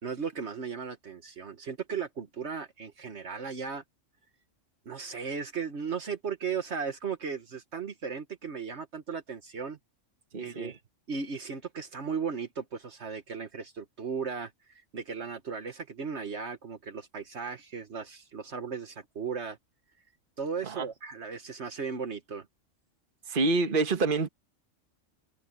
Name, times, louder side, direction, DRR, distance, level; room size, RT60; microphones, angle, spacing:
voice 1, 0.0-3.8 4.8-9.8 10.4-10.8 11.1-19.6 20.4-22.5, right 6 dB, 60° right, 1.6 m, -36 dB
voice 2, 10.3-10.8 20.6-20.9 23.3-24.3, right 3 dB, 45° right, 1.5 m, -27 dB
omnidirectional pair, 1.3 m